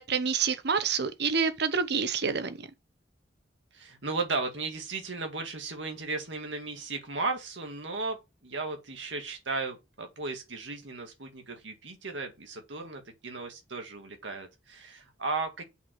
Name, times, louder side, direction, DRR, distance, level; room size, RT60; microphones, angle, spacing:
voice 1, 0.0-2.7, right 5 dB, 65° right, 1.0 m, -28 dB
voice 2, 3.7-8.2 8.4-15.6, right 3 dB, 90° right, 2.1 m, -35 dB
8.1 x 4.8 x 6.1 m
head